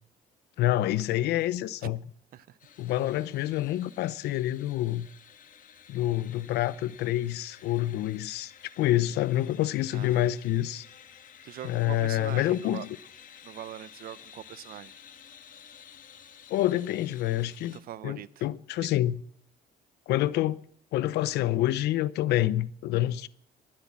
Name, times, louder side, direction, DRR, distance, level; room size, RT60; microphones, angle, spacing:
voice 1, 0.6-2.0 2.8-5.1 5.9-8.5 8.8-10.8 11.6-13.0 16.5-17.8 18.0-19.2 20.1-20.6 20.9-23.3, left 14 dB, 80° left, 0.7 m, -27 dB
sound 1, 2.6-17.8, left 8 dB, 50° left, 1.5 m, -52 dB
voice 2, 9.9-10.3 11.4-12.9 13.4-15.0 17.7-18.4 18.8-18.9, right 12 dB, 60° right, 0.7 m, -42 dB
22.5 x 7.7 x 7.3 m
cardioid pair, 110°, 17 cm